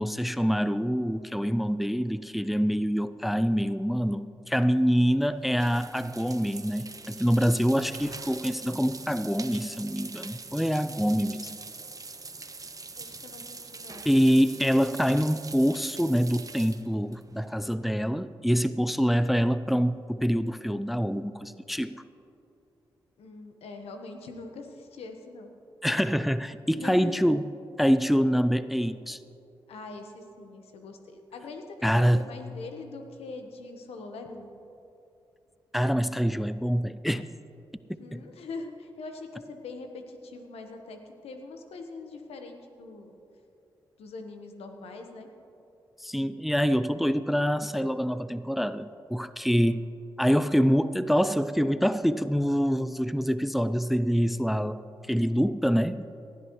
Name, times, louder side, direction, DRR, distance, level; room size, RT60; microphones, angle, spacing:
voice 1, 0.0-11.5 14.1-22.0 25.8-27.4 27.8-29.2 31.8-32.2 35.7-37.2 38.1-38.2 46.0-49.9 50.2-54.8 55.1-56.1, equal, ahead, 14 dB, 0.4 m, -25 dB
sound 1, 4.8-18.0, right 4 dB, 35° right, 0.8 m, -43 dB
voice 2, 12.9-14.1 23.2-25.5 26.8-27.3 29.7-34.5 38.0-43.1 44.0-45.3, left 3 dB, 80° left, 5 dB, 1.2 m, -42 dB
19.0 x 12.5 x 3.1 m, 2.8 s
supercardioid pair, 45°, 10 cm